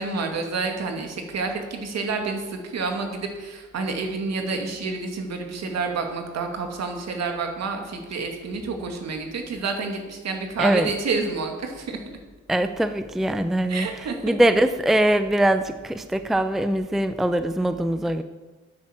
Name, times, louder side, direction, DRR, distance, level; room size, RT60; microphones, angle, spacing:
voice 1, 0.0-12.0 13.7-14.3, right 4 dB, 60° right, 3 dB, 2.6 m, -29 dB
voice 2, 10.6-10.9 12.5-18.2, right 1 dB, ahead, 10 dB, 0.6 m, -22 dB
9.8 x 9.6 x 7.5 m, 1.2 s
cardioid pair, 90°, 30 cm